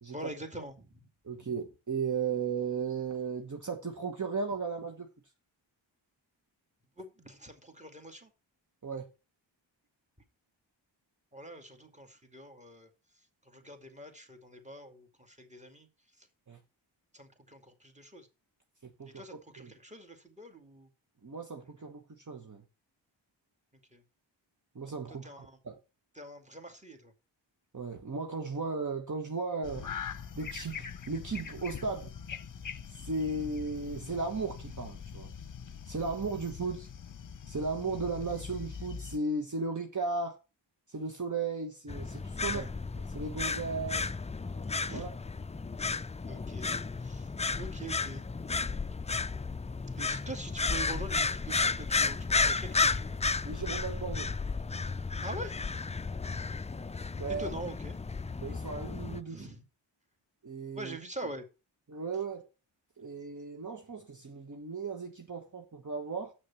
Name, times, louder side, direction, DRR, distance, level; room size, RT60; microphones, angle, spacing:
voice 1, 0.1-0.9 1.3-1.5 7.0-8.3 11.3-12.9 13.5-15.9 16.2-16.3 17.1-18.3 19.1-20.9 23.9-24.0 25.1-25.6 26.1-27.1 42.4-42.7 44.9-45.1 46.3-46.7 47.0-48.2 49.9-53.2 55.2-55.6 57.4-58.0 59.3-59.6 60.7-61.4, right 1 dB, 15° right, 2.3 m, -44 dB
voice 2, 1.2-5.1 8.8-9.0 16.5-16.6 19.0-19.2 19.6-19.7 21.2-22.6 24.7-25.8 27.7-29.9 30.3-32.1 32.9-35.3 35.8-36.9 37.5-40.4 40.9-42.6 43.1-44.1 44.9-45.1 53.4-54.3 57.2-57.5 58.4-59.5 60.4-61.0 61.9-62.4 63.0-66.3, right 4 dB, 40° right, 1.3 m, -35 dB
sound 1, 29.6-39.2, left 7 dB, 40° left, 0.9 m, -43 dB
sound 2, 41.9-59.2, left 4 dB, 15° left, 0.4 m, -33 dB
7.3 x 6.4 x 7.0 m
cardioid pair, 55°, 47 cm